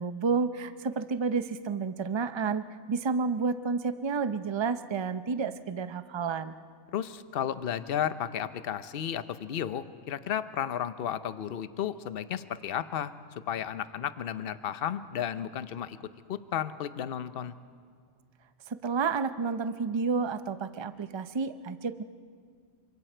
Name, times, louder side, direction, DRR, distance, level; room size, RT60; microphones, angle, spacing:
voice 1, 0.0-6.5 18.7-22.0, right 5 dB, 45° right, 11 dB, 0.3 m, -30 dB
voice 2, 6.9-13.1 13.5-16.0 16.3-17.5, left 9 dB, 50° left, 13 dB, 0.8 m, -33 dB
27.5 x 25.0 x 4.5 m, 2.1 s
omnidirectional pair, 1.4 m